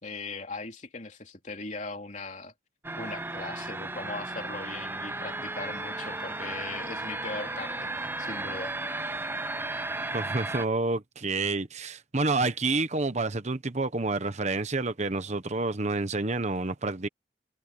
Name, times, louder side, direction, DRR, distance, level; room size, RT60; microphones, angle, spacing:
voice 1, 0.0-2.5 3.0-8.7, left 3 dB, 40° left, 3.1 m, -39 dB
sound 1, 2.8-10.7, right 2 dB, 10° right, 0.7 m, -34 dB
voice 2, 10.1-17.1, right 3 dB, 40° right, 1.1 m, -29 dB
head